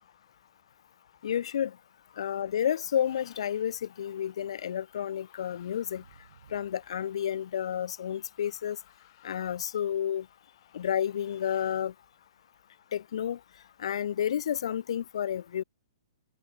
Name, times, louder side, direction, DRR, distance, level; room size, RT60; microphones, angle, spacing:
voice 1, 1.2-1.8 2.2-6.0 6.5-8.8 9.2-10.3 10.7-11.9 12.9-13.4 13.8-15.6, left 9 dB, 60° left, 0.3 m, -31 dB
sound 1, 2.9-11.8, left 17 dB, 45° left, 4.3 m, -62 dB
sound 2, 5.9-7.5 8.4-8.5 14.4-14.5, right 7 dB, 70° right, 3.0 m, -59 dB
open air
figure-of-eight pair, 120°, 3 cm